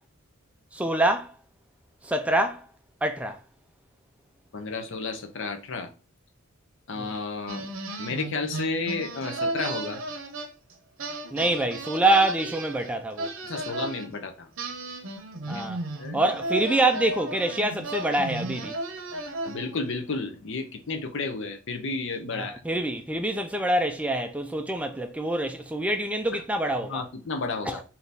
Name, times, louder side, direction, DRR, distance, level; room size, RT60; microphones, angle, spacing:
voice 1, 0.7-1.3 2.0-2.7 3.0-3.4 7.0-7.1 11.3-13.3 15.5-15.8 16.1-18.8 22.3-27.0 27.7-27.8, right 1 dB, 5° right, 0.3 m, -25 dB
voice 2, 4.5-5.9 6.9-7.7 8.0-10.0 13.4-14.5 16.0-16.2 19.5-22.6 26.9-27.8, left 3 dB, 60° left, 0.7 m, -32 dB
sound 1, 7.5-10.7 11.0-14.1 14.6-19.8, right 2 dB, 65° right, 0.7 m, -34 dB
3.4 x 2.8 x 4.0 m
head